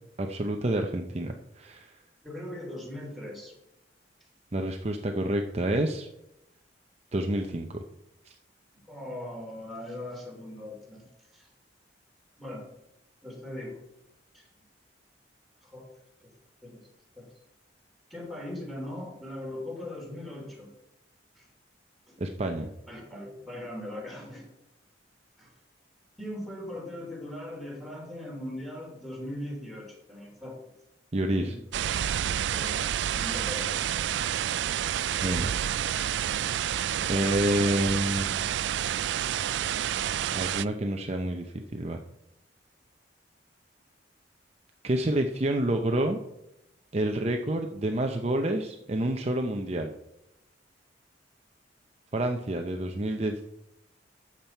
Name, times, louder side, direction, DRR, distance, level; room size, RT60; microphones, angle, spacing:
voice 1, 0.2-1.9 4.5-6.1 7.1-7.8 8.3-8.4 22.2-22.7 31.1-31.5 35.2-35.5 37.1-38.3 40.3-42.0 44.8-46.2 46.9-49.9 52.1-53.4, right 1 dB, 35° right, 4 dB, 0.6 m, -28 dB
voice 2, 2.2-3.5 8.9-11.1 11.3-11.5 12.4-12.7 13.2-13.8 14.3-14.5 15.6-15.9 16.2-16.3 16.6-16.8 17.2-17.3 18.1-20.7 21.3-21.5 22.9-24.5 25.4-25.5 26.2-30.7 31.4-31.6 31.9-32.2 32.5-32.8 33.1-33.8, left 1 dB, ahead, -1 dB, 3.0 m, -40 dB
sound 1, 31.7-40.7, right 10 dB, 75° right, 0.3 m, -29 dB
12.5 x 7.5 x 4.4 m, 0.87 s
head